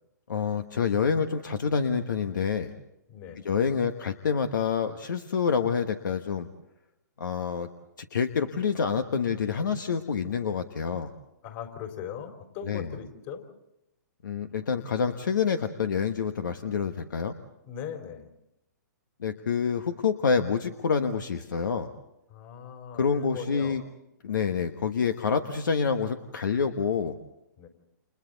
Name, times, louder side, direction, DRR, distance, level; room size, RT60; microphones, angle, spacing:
voice 1, 0.3-2.7 3.4-6.5 7.2-7.7 8.1-11.1 12.7-12.9 14.2-17.3 19.2-21.9 23.0-23.8 24.2-27.2, left 6 dB, 75° left, 8 dB, 1.4 m, -27 dB
voice 2, 3.1-3.4 11.4-13.4 17.7-18.3 22.3-23.8 27.6-27.7, left 8 dB, 40° left, 5 dB, 4.2 m, -39 dB
30.0 x 28.0 x 4.0 m, 0.86 s
hypercardioid pair, 130°, 10 cm